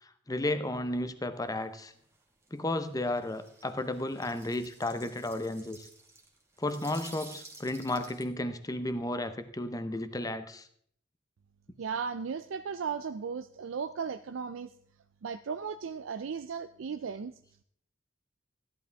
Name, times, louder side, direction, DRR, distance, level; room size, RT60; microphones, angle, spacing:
voice 1, 0.3-1.9 2.5-5.9 6.6-10.7, left 1 dB, 20° left, 11 dB, 0.8 m, -33 dB
sound 1, 1.6-1.7 1.9-2.2 2.4-8.2, right 3 dB, 15° right, 1.6 m, -52 dB
voice 2, 11.8-14.7 15.2-17.3, right 6 dB, 85° right, 11 dB, 0.4 m, -36 dB
14.5 x 11.0 x 3.4 m, 0.62 s
head